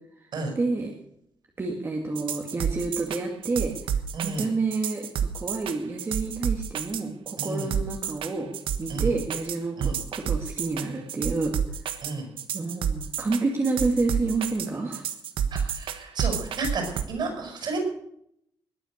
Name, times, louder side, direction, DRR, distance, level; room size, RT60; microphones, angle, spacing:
voice 1, 0.6-0.9 1.6-3.7 4.2-11.5 12.5-15.1, right 3 dB, 30° right, 1 dB, 2.3 m, -29 dB
sound 1, 2.2-17.0, right 8 dB, 85° right, 1.4 m, -29 dB
voice 2, 4.1-4.5 7.4-7.7 8.9-9.1 9.8-9.9 12.0-12.3 15.5-17.8, right 3 dB, 60° right, 3 dB, 6.9 m, -32 dB
20.5 x 9.2 x 6.6 m, 0.73 s
cardioid pair, 120°, 9 cm